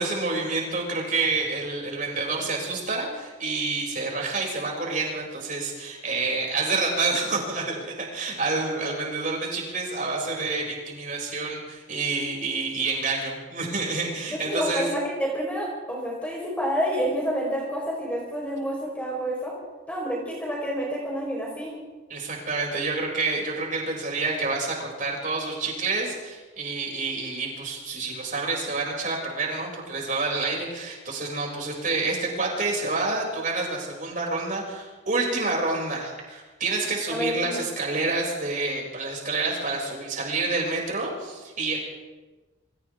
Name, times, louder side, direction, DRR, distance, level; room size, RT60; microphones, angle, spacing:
voice 1, 0.0-14.9 22.1-41.8, right 3 dB, 40° right, -2 dB, 7.4 m, -28 dB
voice 2, 14.3-19.5 19.9-21.7 37.1-37.6, equal, 5° left, -3 dB, 5.1 m, -29 dB
29.5 x 26.0 x 3.8 m, 1.3 s
head